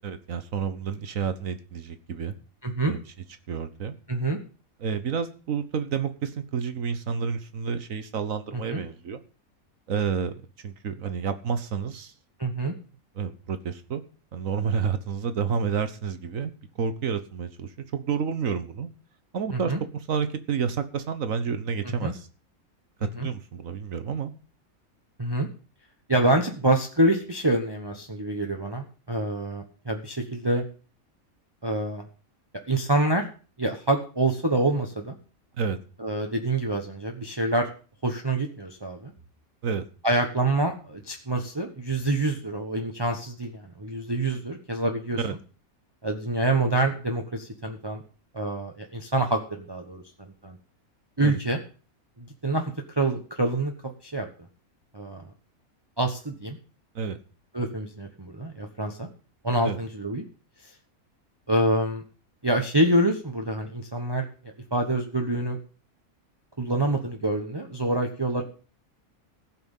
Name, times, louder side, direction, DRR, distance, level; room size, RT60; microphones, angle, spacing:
voice 1, 0.0-2.3 2.9-3.0 3.5-4.0 4.8-9.2 9.9-10.3 10.6-12.1 13.1-14.0 14.3-18.9 19.3-22.3 23.0-24.3 35.6-35.8 39.6-39.8 45.2-45.3 51.2-51.4 56.9-57.2 59.6-59.8, right 6 dB, 65° right, 11 dB, 1.6 m, -30 dB
voice 2, 2.6-2.9 4.1-4.4 8.5-8.8 12.4-12.7 19.5-19.8 21.8-22.1 23.0-23.3 25.2-25.5 26.1-30.6 31.6-32.0 32.7-33.2 33.6-35.1 36.0-37.7 38.0-39.1 40.0-45.2 46.0-48.0 48.3-50.6 51.2-51.6 52.2-53.7 54.0-54.3 54.9-55.3 56.0-56.6 57.5-59.1 59.4-60.2 61.5-62.0 62.4-65.6 66.6-68.4, right 2 dB, 20° right, 3 dB, 1.2 m, -26 dB
15.0 x 6.1 x 7.2 m, 0.37 s
omnidirectional pair, 1.5 m